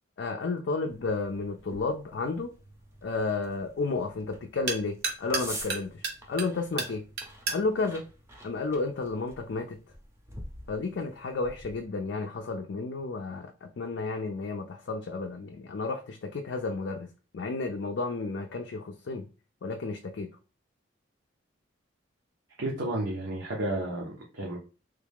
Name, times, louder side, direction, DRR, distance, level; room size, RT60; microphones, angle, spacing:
voice 1, 0.2-2.5 3.0-7.0 7.5-8.0 8.4-9.8 10.7-17.1 17.3-19.3 19.6-20.3, left 3 dB, 65° left, 0.4 m, -32 dB
sound 1, 0.9-11.8, right 1 dB, 15° right, 0.6 m, -47 dB
sound 2, 1.6-9.2, right 4 dB, 55° right, 0.7 m, -38 dB
voice 2, 22.6-24.6, right 1 dB, 90° right, 0.9 m, -32 dB
3.3 x 2.3 x 3.4 m
head